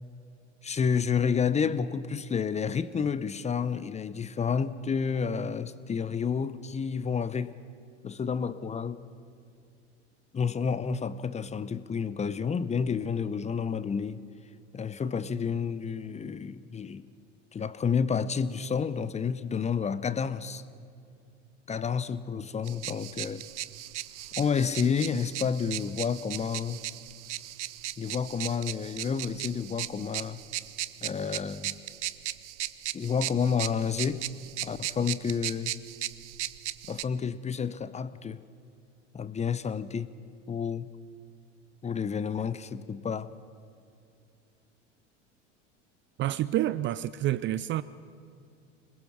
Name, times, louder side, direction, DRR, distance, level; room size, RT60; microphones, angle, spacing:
voice 1, 0.6-7.5 8.0-9.0 10.3-14.2 14.7-17.1 17.5-20.6 21.7-23.4 24.4-26.8 28.0-30.4 31.0-31.7 32.9-34.2 34.6-35.7 36.9-38.4 39.1-40.1 40.5-40.9 41.8-43.3, left 6 dB, 20° left, 0.8 m, -30 dB
sound 1, 22.6-37.0, right 14 dB, 70° right, 0.8 m, -37 dB
voice 2, 46.2-47.8, right 13 dB, 30° right, 0.5 m, -28 dB
25.5 x 21.0 x 6.1 m
figure-of-eight pair, 80°, 36 cm